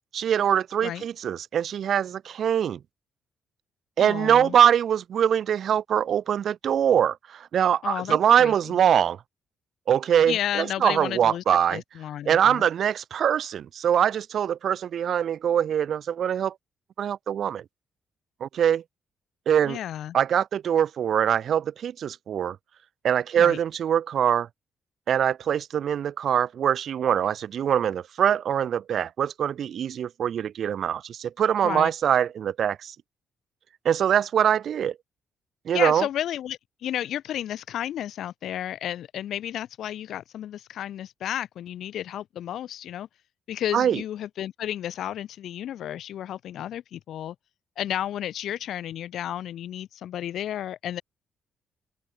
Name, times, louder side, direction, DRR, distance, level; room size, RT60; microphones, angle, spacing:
voice 1, 0.1-2.8 4.0-9.2 9.9-11.8 12.3-16.5 17.0-17.6 18.4-18.8 19.5-19.8 20.1-22.6 23.0-24.5 25.1-32.9 33.8-34.9 35.7-36.1 43.7-44.0, right 9 dB, 60° right, 4.3 m, -23 dB
voice 2, 4.0-4.6 7.8-8.5 10.3-11.4 11.7-12.6 19.6-20.1 23.4-23.6 31.6-31.9 35.7-43.1 43.5-47.3 47.8-51.0, left 11 dB, 75° left, 5.0 m, -32 dB
open air
cardioid pair, 90°, 0 cm